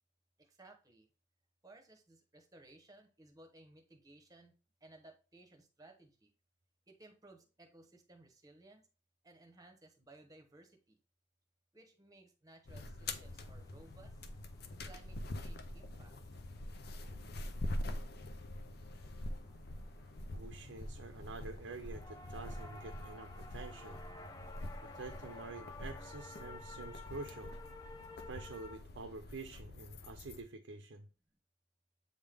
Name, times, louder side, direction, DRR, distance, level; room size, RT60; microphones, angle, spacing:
voice 1, 0.4-1.1 1.6-6.3 6.9-8.9 9.2-11.0 11.7-14.2 14.8-16.1 31.3-31.4, right 2 dB, 20° right, 1.0 m, -60 dB
sound 1, 12.6-30.4, left 1 dB, 55° left, 0.6 m, -45 dB
sound 2, 13.2-28.8, left 3 dB, 20° left, 0.7 m, -55 dB
voice 2, 20.3-24.0 24.8-27.5 28.3-31.1, right 3 dB, 80° right, 0.6 m, -48 dB
8.0 x 3.6 x 3.4 m
head